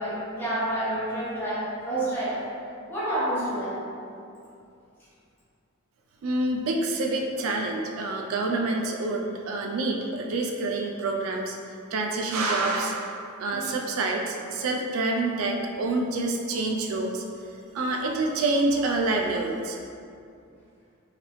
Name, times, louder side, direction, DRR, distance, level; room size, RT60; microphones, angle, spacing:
voice 1, 0.0-2.4 2.9-3.9 13.5-13.7, right 1 dB, 10° left, -11 dB, 0.9 m, -29 dB
voice 2, 6.2-11.6 11.9-17.2 17.7-19.8, right 2 dB, 70° right, 1 dB, 0.3 m, -27 dB
3.0 x 2.8 x 3.1 m, 2.5 s
head